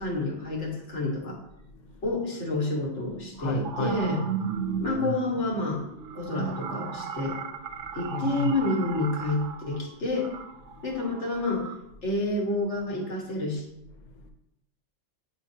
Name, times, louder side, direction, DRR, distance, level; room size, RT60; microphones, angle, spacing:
voice 1, 0.0-1.4 2.0-4.2 4.8-5.8 6.2-7.4 7.9-10.3 10.8-11.7 12.0-13.7, left 2 dB, 75° left, -1 dB, 1.8 m, -29 dB
voice 2, 1.7-2.1 3.4-4.0 4.5-4.9 6.1-6.2 7.2-7.3 7.7-8.6 10.6-10.9 12.0-12.1 13.9-14.3, left 1 dB, 50° left, 5 dB, 0.7 m, -35 dB
sound 1, 2.5-2.6 3.2-11.7, right 6 dB, 55° right, 0.7 m, -35 dB
8.9 x 5.2 x 2.8 m, 0.84 s
omnidirectional pair, 1.2 m